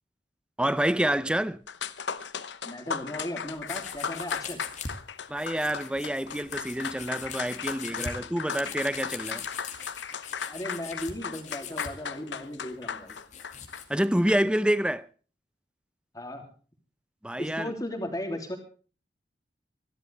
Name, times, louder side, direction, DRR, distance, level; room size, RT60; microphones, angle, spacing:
voice 1, 0.6-1.6 5.3-9.4 13.9-15.1 17.2-17.7, right 1 dB, 5° right, 0.6 m, -27 dB
sound 1, 1.4-1.5 1.7-14.6, left 6 dB, 80° left, 0.9 m, -37 dB
voice 2, 2.6-4.6 7.9-8.0 10.5-13.2 16.1-16.4 17.4-18.6, left 1 dB, 20° left, 3.1 m, -36 dB
sound 2, 3.7-4.9 5.3-11.9 12.5-13.9, left 6 dB, 40° left, 2.3 m, -41 dB
25.5 x 12.0 x 3.5 m
head